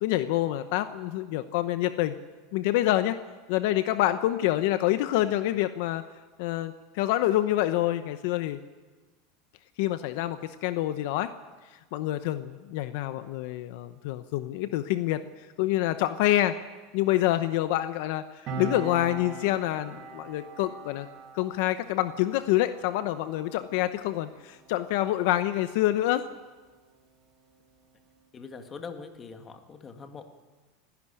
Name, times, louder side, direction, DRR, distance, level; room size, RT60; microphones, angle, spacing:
voice 1, 0.0-2.1 2.5-3.2 3.5-6.0 6.4-8.6 9.8-11.3 11.9-16.6 16.9-21.1 21.3-26.2, left 14 dB, 60° left, 11 dB, 0.9 m, -27 dB
Piano, 18.5-25.5 25.8-26.0, right 5 dB, 35° right, 3.8 m, -42 dB
voice 2, 28.3-30.2, left 5 dB, 20° left, 6 dB, 1.8 m, -42 dB
27.5 x 12.0 x 10.0 m, 1.3 s
supercardioid pair, 160°, 0 cm